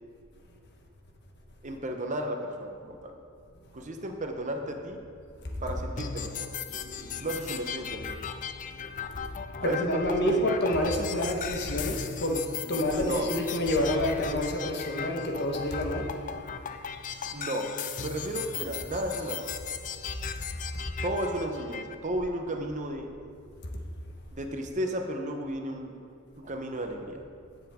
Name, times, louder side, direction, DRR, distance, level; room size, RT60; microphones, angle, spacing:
voice 1, 1.6-3.1 3.7-5.0 5.6-6.5 7.2-8.2 9.6-10.3 12.6-13.3 17.1-17.7 18.0-19.5 21.0-23.1 24.3-26.0 26.4-27.3, right 1 dB, 35° right, 3 dB, 0.9 m, -34 dB
voice 2, 5.4-5.8 6.7-7.4 8.5-16.1 20.0-20.4 20.7-20.8, left 1 dB, 55° left, 1 dB, 1.3 m, -29 dB
sound 1, 6.0-22.0, left 8 dB, 35° left, 0.4 m, -38 dB
16.0 x 7.0 x 3.7 m, 2.3 s
head